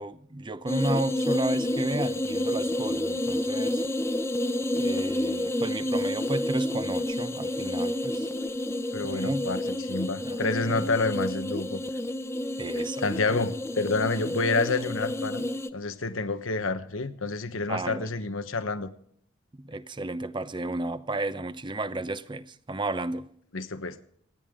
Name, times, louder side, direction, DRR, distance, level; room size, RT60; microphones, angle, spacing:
voice 1, 0.0-3.8 4.7-8.3 9.0-9.4 9.7-9.9 10.2-10.8 12.6-13.0 13.3-13.4 17.7-18.1 19.6-23.3, right 2 dB, 25° right, 0.7 m, -32 dB
sound 1, 0.7-15.7, left 1 dB, 15° left, 0.6 m, -30 dB
voice 2, 8.9-11.8 13.0-15.4 15.7-18.9 23.5-24.0, left 3 dB, 85° left, 1.2 m, -28 dB
27.0 x 10.5 x 3.7 m
head